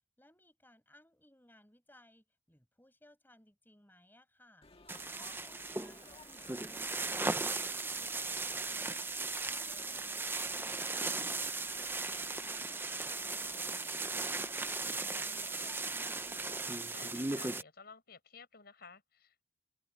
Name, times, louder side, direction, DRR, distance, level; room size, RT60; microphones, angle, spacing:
voice 1, 0.2-4.7 5.1-11.3 11.7-13.2 13.5-16.5, left 1 dB, 10° left, 7.6 m, -63 dB
Laughter / Chatter / Crowd, 4.6-16.8, left 3 dB, 30° left, 1.8 m, -57 dB
sound 1, 4.9-17.6, right 3 dB, 10° right, 0.6 m, -37 dB
voice 2, 5.0-5.4 16.9-19.5, left 5 dB, 55° left, 6.4 m, -55 dB
head